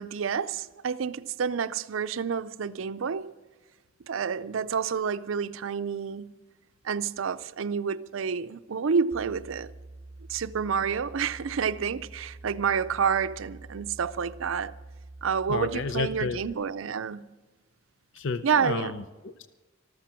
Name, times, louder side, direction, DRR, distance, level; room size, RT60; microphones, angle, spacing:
voice 1, 0.0-3.3 4.1-6.3 6.8-9.7 10.3-14.7 15.2-17.3 18.4-19.0, right 6 dB, 75° right, 0.5 m, -29 dB
sound 1, 9.1-16.5, right 2 dB, 15° right, 0.5 m, -46 dB
voice 2, 15.5-16.4 18.1-19.5, left 4 dB, 65° left, 0.6 m, -31 dB
13.5 x 13.5 x 5.8 m
head